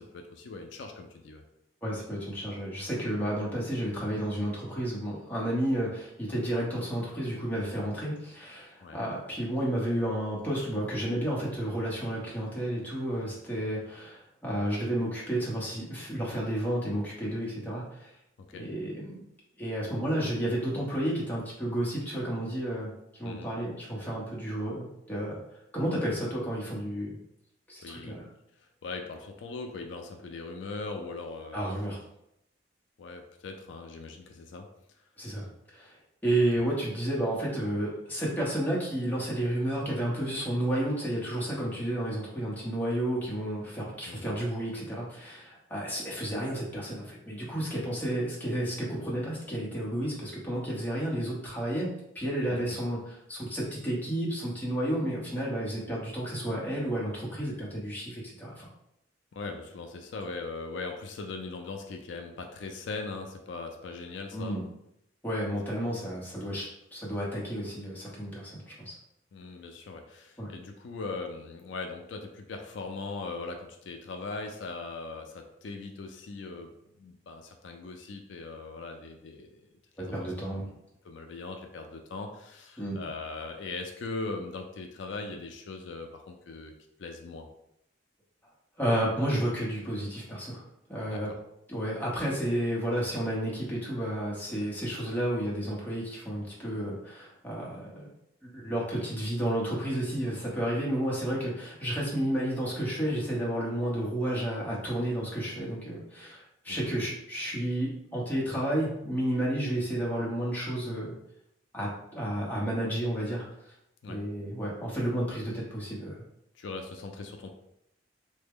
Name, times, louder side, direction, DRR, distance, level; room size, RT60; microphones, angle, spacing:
voice 1, 0.0-1.4 8.8-9.0 18.5-18.7 23.2-23.5 27.8-28.2 28.6-31.6 33.0-34.7 44.1-44.4 52.5-52.6 59.3-64.6 69.3-76.7 77.0-79.7 80.0-80.7 81.0-86.7 87.0-87.5 91.1-91.4 106.7-106.9 114.0-114.2 116.5-117.5, left 3 dB, 70° left, 4 dB, 0.4 m, -40 dB
voice 2, 1.8-18.1 18.6-19.2 19.6-25.4 25.7-27.2 27.7-28.2 31.5-32.0 35.2-35.4 35.7-36.0 36.2-58.7 64.3-64.6 65.2-69.0 70.4-70.5 80.0-80.7 82.8-83.0 88.8-90.6 90.9-91.3 91.7-98.1 98.4-111.1 111.7-113.7 114.1-116.2, right 1 dB, 10° left, -6 dB, 0.8 m, -31 dB
3.2 x 2.1 x 3.5 m, 0.81 s
head